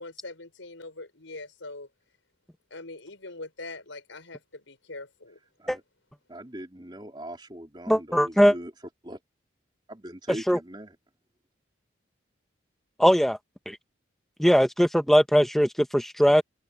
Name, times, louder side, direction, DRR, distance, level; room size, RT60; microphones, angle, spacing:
voice 1, 0.0-1.9 2.7-5.4, left 2 dB, 90° left, 6.5 m, -42 dB
voice 2, 6.3-8.7 9.0-9.2 9.9-11.0, right 1 dB, 25° right, 3.6 m, -40 dB
voice 3, 7.9-8.5 10.5-10.6 13.0-13.4 13.7-13.8 14.4-16.4, equal, ahead, 1.2 m, -20 dB
open air
head